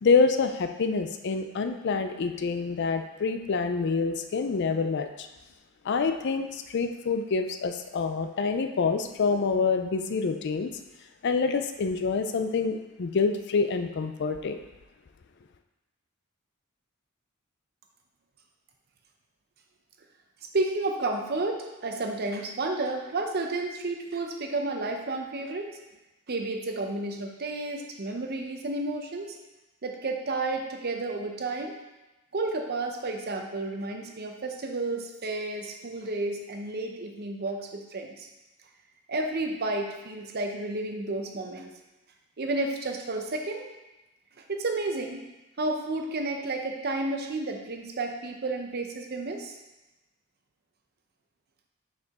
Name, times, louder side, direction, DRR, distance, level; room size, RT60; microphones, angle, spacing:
voice 1, 0.0-5.3 5.8-10.7 11.2-14.6, left 4 dB, 55° left, 7 dB, 0.4 m, -26 dB
voice 2, 20.5-25.7 26.3-29.4 29.8-31.8 32.3-38.3 39.1-41.7 42.4-43.7 44.5-45.3 45.6-49.6, right 2 dB, 45° right, 3 dB, 0.7 m, -31 dB
6.6 x 4.8 x 3.6 m, 1.0 s
head